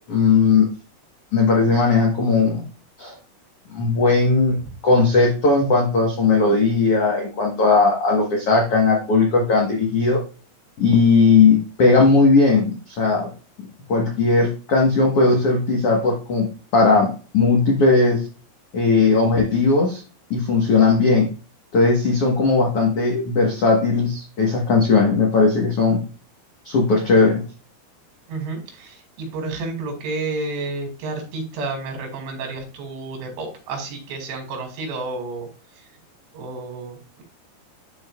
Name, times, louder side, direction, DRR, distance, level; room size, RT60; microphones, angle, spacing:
voice 1, 0.1-0.7 1.3-2.6 3.0-3.1 3.7-4.6 4.8-10.2 10.8-13.3 13.9-18.3 18.7-20.0 20.3-21.3 21.7-26.0 26.6-27.4, left 4 dB, 85° left, -1 dB, 1.3 m, -17 dB
voice 2, 28.3-35.5 36.3-37.2, right 3 dB, 80° right, 3 dB, 4.3 m, -30 dB
12.0 x 4.7 x 2.4 m, 0.36 s
omnidirectional pair, 4.9 m